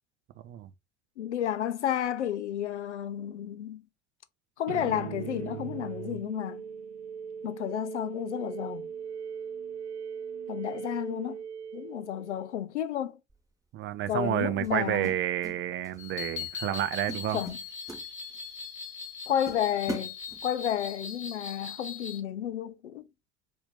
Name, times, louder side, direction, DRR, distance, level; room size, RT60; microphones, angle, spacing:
voice 1, 1.2-3.8 4.6-6.6 7.4-8.9 10.5-11.4 11.7-13.2 14.1-15.1 17.3-17.6 19.3-20.1 20.4-23.1, left 10 dB, 80° left, 0.5 m, -31 dB
sound 1, 4.7-12.6, right 7 dB, 75° right, 0.6 m, -39 dB
sound 2, 13.3-13.5 14.6-15.6 15.8-16.1 16.6-16.8 17.1-18.6 19.0-19.1 19.5-20.8, right 1 dB, 10° right, 1.5 m, -41 dB
voice 2, 13.7-17.4, right 12 dB, 35° right, 0.5 m, -30 dB
sound 3, 16.0-22.2, left 6 dB, 35° left, 1.3 m, -40 dB
4.3 x 2.6 x 3.5 m
figure-of-eight pair, 60°, 35 cm